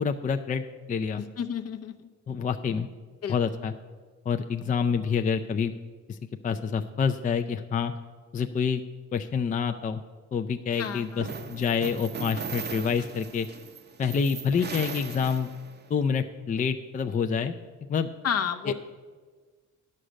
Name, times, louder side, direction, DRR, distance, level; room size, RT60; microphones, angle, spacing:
voice 1, 0.0-1.2 2.3-2.9 3.3-3.7 4.3-5.7 6.1-6.2 6.4-7.9 8.3-8.8 9.1-10.0 10.3-13.5 14.0-15.5 15.9-17.5 17.9-18.1 18.6-18.7, left 6 dB, 25° left, 6 dB, 0.4 m, -27 dB
voice 2, 1.2-2.1 3.2-3.4 10.8-11.3 18.2-18.7, left 7 dB, 55° left, 8 dB, 0.8 m, -31 dB
sound 1, 10.7-15.9, right 5 dB, 35° right, 0.7 m, -38 dB
9.9 x 6.5 x 6.3 m, 1.5 s
cardioid pair, 90°, 30 cm